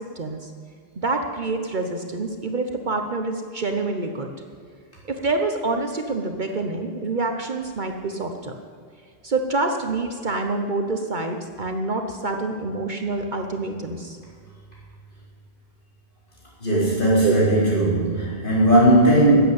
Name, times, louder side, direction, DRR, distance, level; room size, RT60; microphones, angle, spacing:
voice 1, 0.2-0.5 1.0-4.3 5.1-8.5 9.2-14.2 17.2-17.3, right 3 dB, 50° right, 5 dB, 1.0 m, -26 dB
voice 2, 16.6-19.4, right 1 dB, 50° left, -6 dB, 4.5 m, -17 dB
13.0 x 8.1 x 8.6 m, 2.1 s
omnidirectional pair, 1.1 m